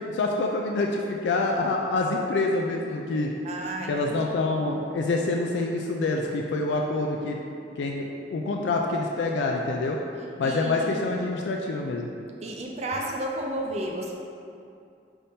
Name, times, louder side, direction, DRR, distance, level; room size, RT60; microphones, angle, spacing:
voice 1, 0.0-3.3 3.9-7.4 7.8-10.0 10.4-12.1, left 2 dB, 75° left, 1 dB, 0.3 m, -26 dB
voice 2, 3.4-4.2 10.4-11.1 12.4-14.1, right 1 dB, 40° right, 0 dB, 0.4 m, -32 dB
5.5 x 3.4 x 2.7 m, 2.5 s
head